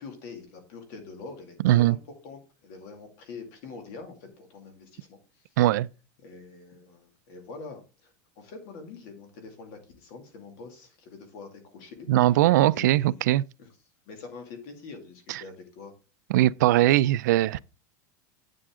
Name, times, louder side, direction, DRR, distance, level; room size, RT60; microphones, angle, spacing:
voice 1, 0.0-5.5 6.2-12.4 12.7-13.3 13.6-13.7 14.1-15.9 17.0-17.1, left 4 dB, 45° left, 2.3 m, -45 dB
voice 2, 1.6-1.9 5.6-5.9 12.1-13.4 15.3-15.4 16.3-17.6, right 15 dB, 85° right, 0.4 m, -20 dB
8.5 x 7.6 x 3.7 m
supercardioid pair, 180°, 9 cm